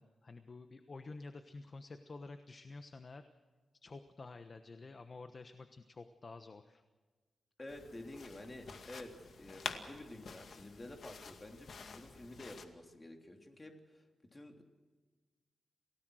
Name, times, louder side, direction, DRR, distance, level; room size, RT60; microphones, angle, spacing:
voice 1, 0.0-3.3 3.8-6.8, left 3 dB, 35° left, 8 dB, 1.2 m, -50 dB
voice 2, 7.6-9.1 9.4-14.0 14.3-14.6, left 1 dB, 20° left, 3 dB, 3.4 m, -50 dB
sound 1, 7.7-12.7, left 5 dB, 60° left, 2.1 m, -48 dB
29.0 x 18.0 x 6.4 m, 1.3 s
wide cardioid pair, 130°, 0 cm